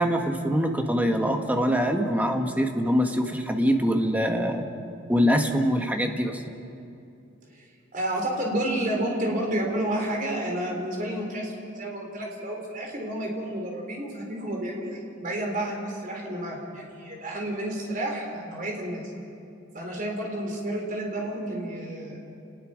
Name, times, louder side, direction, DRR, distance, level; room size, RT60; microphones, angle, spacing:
voice 1, 0.0-4.6 5.1-6.4, equal, 10° right, 4 dB, 1.3 m, -24 dB
voice 2, 7.9-19.0 19.7-22.2, right 1 dB, 40° right, 0 dB, 4.1 m, -30 dB
29.5 x 20.0 x 5.1 m, 2.6 s
head